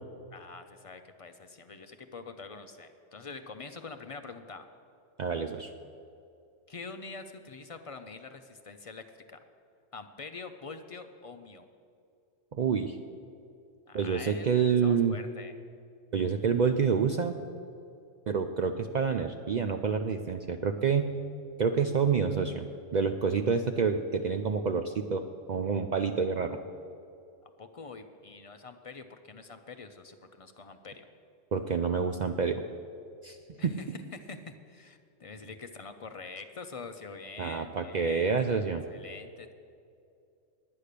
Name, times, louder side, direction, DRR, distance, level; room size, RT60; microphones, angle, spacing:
voice 1, 0.3-4.6 6.7-9.4 9.9-11.7 13.9-15.5 27.6-31.1 33.6-33.9 34.1-38.4 38.9-39.5, left 4 dB, 50° left, 7 dB, 0.4 m, -45 dB
voice 2, 5.2-5.7 12.5-13.0 13.9-15.1 16.1-17.4 18.3-21.1 21.6-22.7 22.9-25.2 25.5-26.6 31.5-32.6 33.2-33.4 33.6-33.7 37.4-38.8, right 6 dB, 65° right, 6 dB, 0.4 m, -28 dB
10.0 x 9.4 x 6.6 m, 2.5 s
omnidirectional pair, 1.2 m